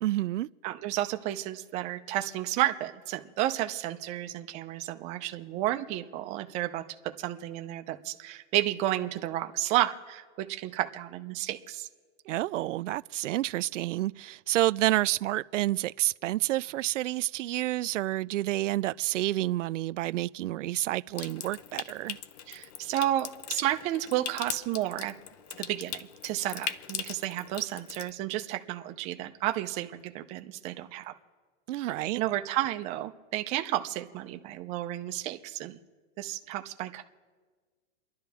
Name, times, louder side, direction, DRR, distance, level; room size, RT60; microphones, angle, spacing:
voice 1, 0.0-0.5 12.3-22.2 31.7-32.2, right 15 dB, 75° right, 0.5 m, -29 dB
voice 2, 0.6-6.8 7.2-11.9 22.5-25.1 25.6-31.1 31.8-35.8 36.2-37.0, right 14 dB, 20° right, 0.5 m, -32 dB
Water tap faucet / Sink (filling or washing) / Trickle dribble, 21.1-28.1, left 10 dB, 35° left, 0.6 m, -40 dB
29.5 x 11.5 x 3.5 m
hypercardioid pair, 155°, 37 cm